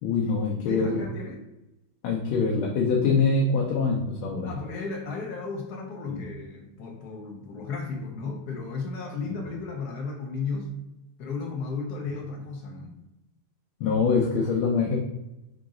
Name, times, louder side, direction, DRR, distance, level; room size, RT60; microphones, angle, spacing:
voice 1, 0.0-1.0 2.0-4.5 6.1-6.2 9.2-9.4 13.8-15.0, left 4 dB, 85° left, -1 dB, 1.5 m, -24 dB
voice 2, 0.6-1.4 4.4-10.7 11.2-12.9, left 4 dB, 65° left, 1 dB, 1.1 m, -34 dB
5.0 x 2.9 x 3.7 m, 0.91 s
omnidirectional pair, 2.3 m